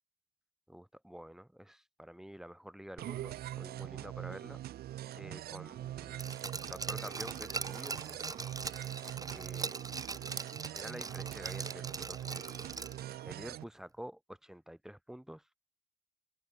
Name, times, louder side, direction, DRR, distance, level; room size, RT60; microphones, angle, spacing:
voice 1, 0.7-4.6 5.1-6.3 6.6-8.2 9.3-9.8 10.7-12.6 13.2-15.4, equal, 5° right, 3.5 m, -49 dB
sound 1, 3.0-13.6, right 13 dB, 65° right, 3.0 m, -43 dB
Glass, 6.2-13.1 13.5-13.6, right 4 dB, 20° right, 2.7 m, -41 dB
cardioid pair, 110°, 17 cm